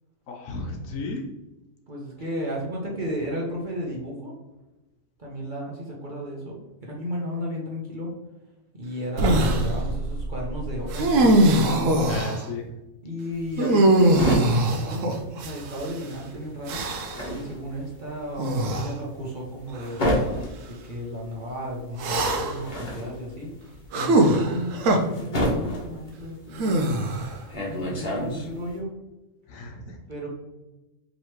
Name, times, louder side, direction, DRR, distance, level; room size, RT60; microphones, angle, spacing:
voice 1, 0.3-1.3 12.0-12.7 29.5-30.0, left 3 dB, 65° left, 1 dB, 1.2 m, -34 dB
voice 2, 1.9-4.3 5.2-8.1 8.7-12.1 13.0-15.1 15.3-16.8 17.3-20.1 20.7-23.5 23.9-26.9 27.7-28.9 30.1-30.3, equal, 40° right, -3 dB, 0.9 m, -34 dB
sound 1, 9.2-9.7 10.9-12.4 13.6-15.9 16.7-17.3 18.4-18.9 19.7-19.9 22.0-22.7 23.9-25.0 26.6-27.4, right 1 dB, 65° right, 1.0 m, -21 dB
sound 2, 9.2-12.2, right 2 dB, 90° right, 1.3 m, -30 dB
sound 3, 13.3-28.8, equal, 35° left, 1.1 m, -30 dB
5.1 x 3.1 x 3.0 m, 1.0 s
omnidirectional pair, 1.5 m